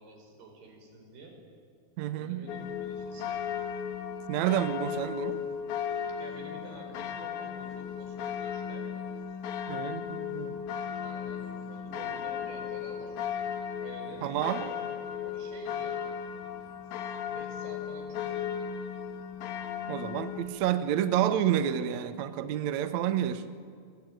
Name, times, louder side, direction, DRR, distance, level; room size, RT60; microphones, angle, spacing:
voice 1, 0.0-1.3 2.2-3.4 6.2-8.9 11.0-13.5 13.8-14.8 15.2-16.1 17.3-18.8, right 3 dB, 65° right, 3 dB, 6.7 m, -49 dB
voice 2, 2.0-2.4 4.3-5.4 9.7-10.6 14.2-14.7 19.9-23.4, right 10 dB, 90° right, 11 dB, 1.5 m, -29 dB
sound 1, 2.5-20.5, left 8 dB, 85° left, 4.1 m, -36 dB
27.5 x 23.5 x 9.2 m, 2.2 s
omnidirectional pair, 4.9 m